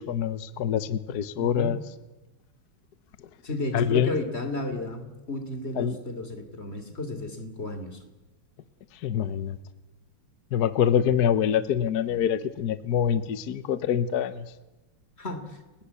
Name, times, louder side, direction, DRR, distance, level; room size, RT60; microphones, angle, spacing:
voice 1, 0.0-1.8 3.7-4.1 5.8-6.0 9.0-9.6 10.5-14.5, left 8 dB, 55° left, 13 dB, 1.3 m, -25 dB
voice 2, 1.4-1.7 3.4-8.0 15.2-15.6, left 2 dB, 30° left, 8 dB, 3.2 m, -33 dB
30.0 x 19.0 x 8.4 m, 1.1 s
omnidirectional pair, 2.4 m